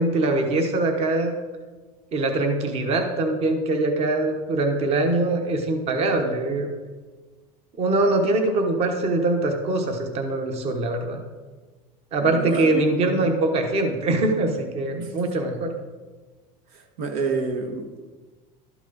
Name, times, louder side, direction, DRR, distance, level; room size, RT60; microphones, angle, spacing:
voice 1, 0.0-1.3 2.1-6.7 7.8-11.2 12.1-15.7, right 2 dB, 35° right, 4 dB, 1.1 m, -23 dB
voice 2, 12.2-13.2 15.0-15.1 16.7-18.1, right 4 dB, 90° right, 4 dB, 1.4 m, -29 dB
12.5 x 6.2 x 4.0 m, 1.3 s
cardioid pair, 160°, 19 cm